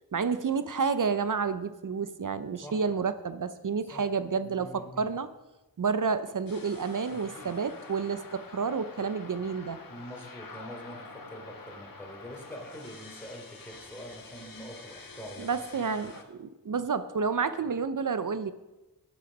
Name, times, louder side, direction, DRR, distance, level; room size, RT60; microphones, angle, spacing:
voice 1, 0.1-5.3 5.8-9.8 15.4-18.5, right 5 dB, 55° right, 13 dB, 0.7 m, -30 dB
voice 2, 4.4-5.2 7.1-7.5 9.9-15.9, equal, 5° left, 0 dB, 3.4 m, -45 dB
sound 1, 6.5-16.2, left 4 dB, 65° left, 1.5 m, -47 dB
12.0 x 8.8 x 5.2 m, 1.1 s
wide cardioid pair, 55°, 37 cm